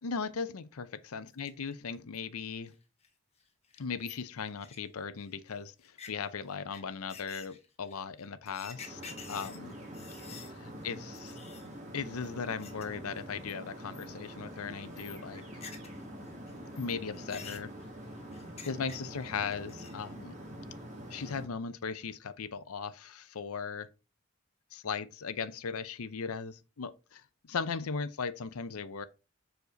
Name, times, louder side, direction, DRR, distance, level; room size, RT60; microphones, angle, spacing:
voice 1, 0.0-2.7 3.8-9.0 9.3-9.8 10.3-11.4 11.9-15.4 16.8-17.7 18.6-20.4 21.1-23.9 24.7-29.1, left 5 dB, 80° left, 0.6 m, -38 dB
sound 1, 1.3-1.7 2.1-2.2 2.7-2.8 3.0-3.1 3.4-3.5 3.7-5.3 5.8-6.1 6.7-6.8 7.1-10.5 10.8-10.9 11.1-11.7 12.2-12.8 13.1-13.5 13.9-14.3 14.6-16.0 16.3-19.2 19.5-20.1, left 6 dB, 30° left, 1.1 m, -49 dB
sound 2, 8.7-21.5, equal, 30° right, 1.9 m, -45 dB
6.5 x 4.9 x 3.9 m
head